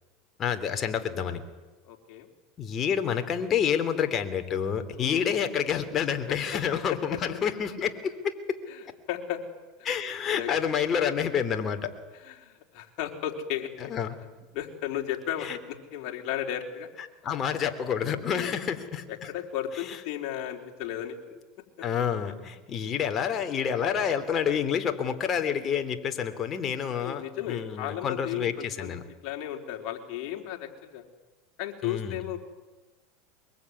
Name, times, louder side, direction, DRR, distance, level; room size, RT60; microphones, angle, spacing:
voice 1, 0.4-1.4 2.6-8.6 9.8-11.9 13.8-14.2 15.4-15.6 17.2-19.0 21.8-29.0 31.8-32.2, left 8 dB, 35° left, 7 dB, 3.2 m, -28 dB
voice 2, 1.9-2.3 5.0-5.2 6.3-6.4 6.9-7.0 8.7-8.8 9.1-9.4 9.8-9.9 10.3-10.5 12.2-13.9 14.5-15.5 15.9-16.9 18.3-18.5 19.1-21.2 27.0-28.9 29.2-31.0 31.6-32.4, left 11 dB, 60° left, 2 dB, 4.1 m, -34 dB
23.0 x 23.0 x 9.8 m, 1.2 s
supercardioid pair, 105°, 0 cm